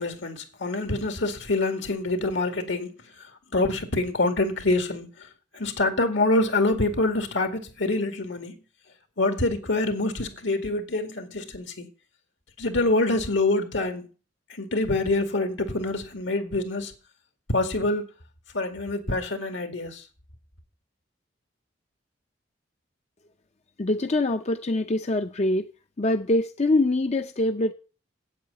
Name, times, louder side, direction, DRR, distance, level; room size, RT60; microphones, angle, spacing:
voice 1, 0.0-2.9 3.5-5.1 5.5-8.5 9.2-11.9 12.6-14.1 14.6-16.9 17.5-18.0 18.5-20.0, left 2 dB, 75° left, 2.3 m, -25 dB
voice 2, 23.8-25.7 26.0-27.7, left 2 dB, 35° left, 0.6 m, -24 dB
8.6 x 8.3 x 8.2 m
head